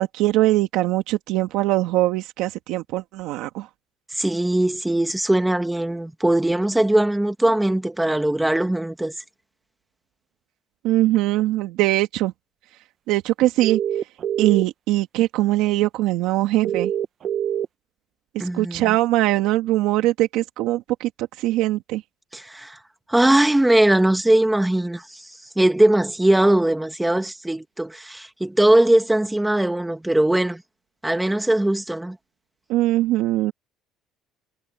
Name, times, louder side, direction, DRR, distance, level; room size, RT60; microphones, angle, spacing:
voice 1, 0.0-3.7 10.8-12.3 13.1-13.8 14.4-16.9 18.4-21.1 21.4-22.0 32.7-33.5, right 16 dB, 80° right, 1.8 m, -21 dB
voice 2, 4.1-9.1 18.4-18.9 22.3-22.8 23.1-25.2 25.6-30.6 31.0-32.2, right 1 dB, 5° right, 1.9 m, -20 dB
sound 1, 13.6-14.6 16.6-17.6, right 10 dB, 45° right, 1.0 m, -24 dB
cardioid pair, 130°, 0 cm